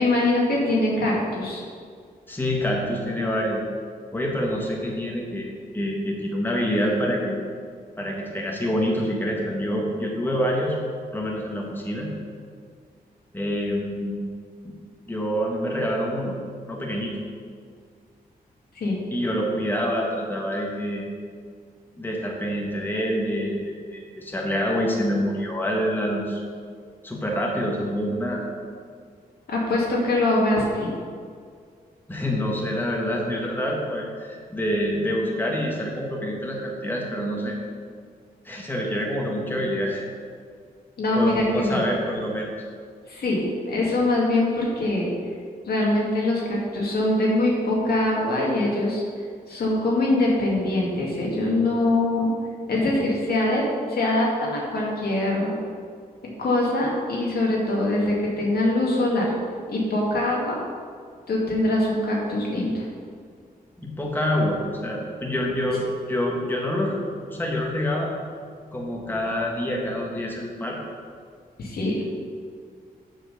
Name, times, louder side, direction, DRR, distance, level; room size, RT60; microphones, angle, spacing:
voice 1, 0.0-1.6 18.8-19.0 29.5-30.9 41.0-41.9 43.1-45.1 45.7-49.0 49.5-52.3 52.7-53.6 53.9-55.6 56.4-59.3 59.7-60.6 61.3-62.9 71.6-72.0, left 1 dB, 80° left, -3 dB, 1.9 m, -23 dB
voice 2, 2.3-3.6 4.1-7.3 8.0-10.8 11.1-12.1 13.3-14.2 14.6-14.7 15.1-16.3 16.7-17.1 19.1-21.1 22.0-26.4 27.0-28.4 32.1-37.5 38.4-40.0 41.1-42.5 63.8-67.0 67.3-68.1 68.7-70.8, equal, 10° left, -2 dB, 1.4 m, -26 dB
7.0 x 4.8 x 6.4 m, 2.1 s
cardioid pair, 90°, 16 cm